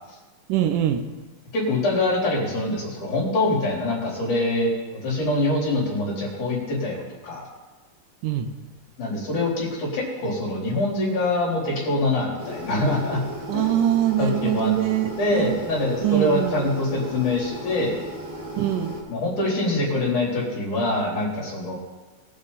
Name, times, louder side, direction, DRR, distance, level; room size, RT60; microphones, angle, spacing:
voice 1, 0.5-1.0 8.2-8.5 13.5-15.6 16.0-16.6 18.6-19.0, right 11 dB, 80° right, 8 dB, 2.3 m, -23 dB
voice 2, 1.5-7.5 9.0-13.2 13.5-13.8 14.2-14.7 15.2-18.0 19.1-21.8, left 2 dB, 65° left, -5 dB, 5.0 m, -24 dB
sound 1, 12.4-19.0, equal, 30° right, 2.1 m, -36 dB
21.5 x 7.4 x 4.1 m, 1.2 s
omnidirectional pair, 3.8 m